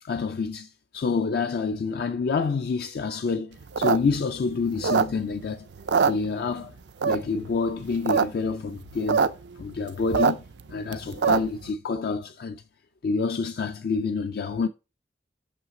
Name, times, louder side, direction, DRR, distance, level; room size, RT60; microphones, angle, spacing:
voice 1, 0.0-5.7 6.1-6.7 7.0-9.3 9.6-10.4 10.7-12.6 13.0-14.7, left 4 dB, 55° left, 0.4 m, -28 dB
sound 1, 3.6-5.4 5.8-6.7 7.0-7.5 7.9-8.2 8.5-8.6 8.8-9.3 9.6-11.6, right 6 dB, 75° right, 0.5 m, -23 dB
6.0 x 5.6 x 3.7 m
head